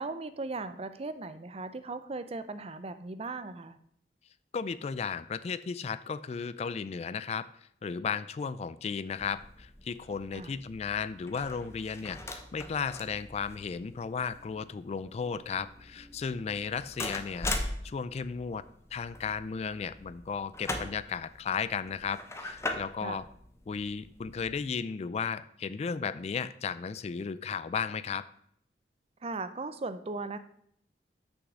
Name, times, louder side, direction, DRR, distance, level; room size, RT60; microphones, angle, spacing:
voice 1, 0.0-3.8 10.3-10.5 23.0-23.2 29.2-30.4, right 3 dB, 35° right, 11 dB, 0.5 m, -37 dB
voice 2, 4.5-7.5 7.8-17.5 17.8-18.6 18.9-23.2 23.7-28.2, left 6 dB, 35° left, 15 dB, 0.3 m, -35 dB
sound 1, 9.2-24.6, left 2 dB, 15° left, 0.8 m, -41 dB
6.3 x 6.1 x 6.2 m, 0.68 s
head